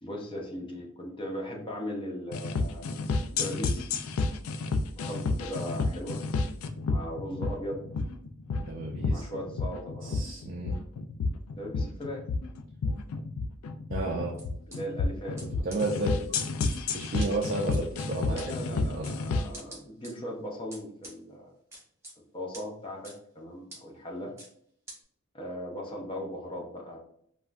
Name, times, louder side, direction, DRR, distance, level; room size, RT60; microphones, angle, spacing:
voice 1, 0.0-3.9 5.0-6.2 6.9-7.8 9.1-10.3 11.6-12.2 14.7-15.6 18.2-21.5 22.3-24.3 25.3-27.0, equal, 25° left, 0 dB, 0.5 m, -38 dB
sound 1, 2.3-19.6, left 3 dB, 80° left, 0.3 m, -31 dB
voice 2, 8.7-9.3 10.0-10.8 13.9-14.3 15.6-16.2 16.9-18.4 18.7-19.2, right 2 dB, 40° right, -2 dB, 0.4 m, -32 dB
sound 2, 14.4-14.8 15.4-15.5 15.7-15.8 16.4-16.8 17.2-17.3 17.7-17.8 18.4-18.5 19.0-19.2 19.5-20.1 20.7-21.1 21.7-22.1 22.5-22.6 23.0-23.1 23.7-23.8 24.4-24.5 24.9-25.0, right 2 dB, 10° right, 0.8 m, -45 dB
3.4 x 2.2 x 2.4 m, 0.67 s
head